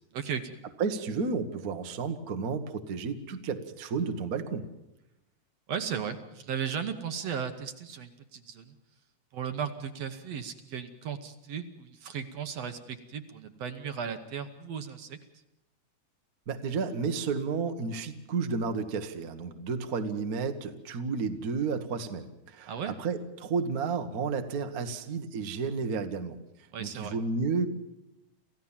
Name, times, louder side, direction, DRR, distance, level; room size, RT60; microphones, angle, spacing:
voice 1, 0.1-0.6 5.7-8.8 9.3-15.2 22.7-22.9 26.7-27.2, right 7 dB, 65° right, 8 dB, 2.0 m, -36 dB
voice 2, 0.8-4.6 16.5-22.7 23.0-26.4 26.8-27.7, right 5 dB, 45° right, 6 dB, 1.2 m, -32 dB
28.0 x 15.5 x 7.3 m, 0.89 s
omnidirectional pair, 3.6 m